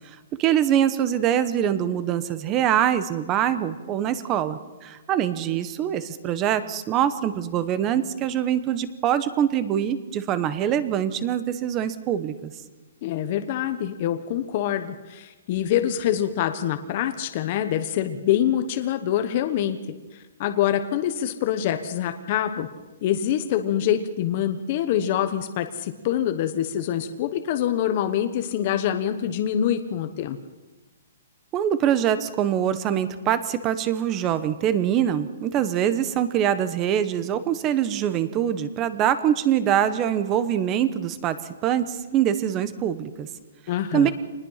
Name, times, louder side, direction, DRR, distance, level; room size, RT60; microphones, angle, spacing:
voice 1, 0.4-12.5 31.5-43.3 43.9-44.1, right 10 dB, 20° right, 13 dB, 1.0 m, -24 dB
voice 2, 13.0-19.8 20.1-22.7 23.0-30.4 43.7-44.1, left 10 dB, 30° left, 8 dB, 1.1 m, -25 dB
26.0 x 20.0 x 5.8 m, 1.2 s
hypercardioid pair, 170°, 0 cm